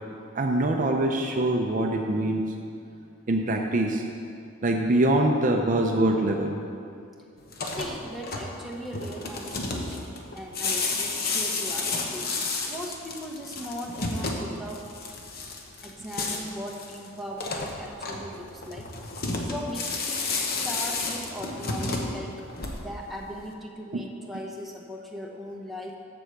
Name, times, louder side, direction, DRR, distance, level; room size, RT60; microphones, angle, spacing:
voice 1, 0.3-2.5 3.3-4.0 4.6-6.6 23.9-24.1, right 1 dB, 40° right, 2 dB, 0.5 m, -24 dB
sound 1, 7.4-23.1, left 3 dB, 45° left, 1.0 m, -32 dB
voice 2, 7.6-12.3 12.7-14.8 15.8-18.9 19.4-20.2 20.5-22.5 22.8-25.9, equal, ahead, -2 dB, 0.9 m, -38 dB
8.0 x 6.9 x 6.5 m, 2.4 s
head